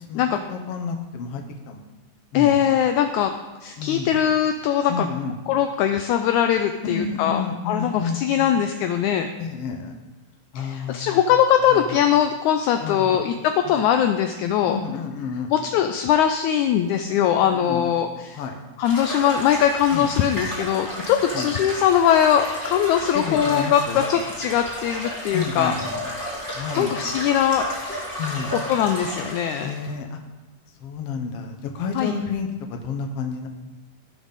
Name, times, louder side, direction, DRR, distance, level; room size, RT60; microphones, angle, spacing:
voice 1, 0.5-1.8 2.3-2.6 3.8-4.2 4.9-5.3 6.9-8.5 9.4-9.9 10.5-11.2 11.7-12.0 12.8-13.2 13.6-13.8 14.6-15.5 17.1-17.9 18.4-18.6 19.9-20.1 21.3-21.6 23.1-24.0 25.3-25.9 26.5-26.9 28.2-28.5 29.6-30.2 30.8-33.5, left 5 dB, 65° left, 4 dB, 1.6 m, -30 dB
voice 2, 2.3-3.3 3.6-5.1 5.5-9.3 10.5-14.8 15.5-18.4 18.8-25.7 26.8-27.7 28.7-29.7 31.9-32.1, left 9 dB, 80° left, 7 dB, 1.7 m, -21 dB
sound 1, 18.8-29.9, equal, 5° left, 2.2 m, -32 dB
17.0 x 6.1 x 4.1 m, 1.1 s
omnidirectional pair, 3.9 m